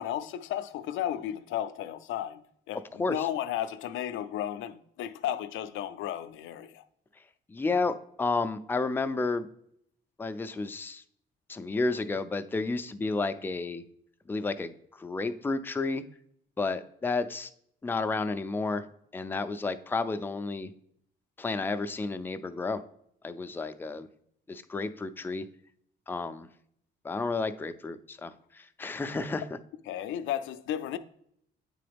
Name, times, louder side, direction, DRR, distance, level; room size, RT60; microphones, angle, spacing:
voice 1, 0.0-2.4 2.7-2.8 3.1-6.8 29.9-31.0, left 11 dB, 80° left, 0.4 m, -33 dB
voice 2, 7.5-9.5 10.2-11.0 11.5-13.8 14.3-16.0 16.6-17.5 17.8-18.8 19.1-20.7 21.4-22.8 23.2-24.1 24.5-25.5 26.1-26.5 27.0-29.4, left 3 dB, 10° left, 0.4 m, -31 dB
8.5 x 3.8 x 3.4 m
cardioid pair, 90°, 20 cm